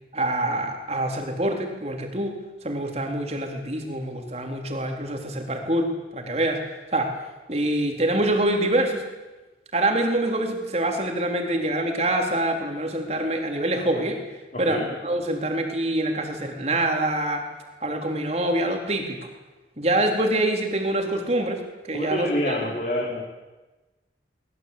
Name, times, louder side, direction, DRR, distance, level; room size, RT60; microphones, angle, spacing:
voice 1, 0.1-6.6 6.9-7.1 7.5-9.0 9.7-14.2 14.6-17.5 17.8-19.2 19.8-21.6 21.9-22.7, right 1 dB, 35° right, 3 dB, 3.9 m, -25 dB
voice 2, 14.5-14.9 21.9-23.2, left 1 dB, 40° left, -2 dB, 4.2 m, -27 dB
24.0 x 21.0 x 8.6 m, 1.1 s
head